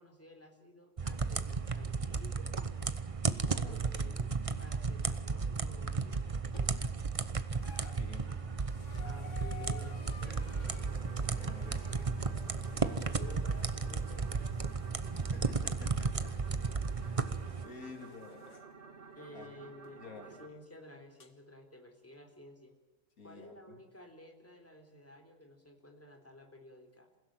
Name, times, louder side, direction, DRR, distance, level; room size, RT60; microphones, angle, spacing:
voice 1, 0.0-2.5 3.2-7.0 9.0-11.1 11.6-11.8 12.8-14.9 19.2-22.7 23.2-27.1, left 1 dB, 10° left, 3 dB, 3.6 m, -53 dB
sound 1, 1.0-17.6, right 4 dB, 30° right, 0.9 m, -34 dB
voice 2, 3.2-3.8 7.8-8.3 11.2-11.8 12.6-13.0 15.1-16.3 17.0-17.4 17.6-18.5 19.3-19.5 20.0-20.4 23.2-23.8, left 4 dB, 85° left, 4 dB, 3.1 m, -51 dB
sound 2, 6.5-7.0 7.5-18.7 19.8-19.9 21.2-21.3, left 5 dB, 60° left, 2.1 m, -55 dB
sound 3, 8.3-9.7 10.1-20.5, right 5 dB, 55° right, 2.7 m, -53 dB
27.5 x 16.5 x 8.9 m, 1.1 s
omnidirectional pair, 1.5 m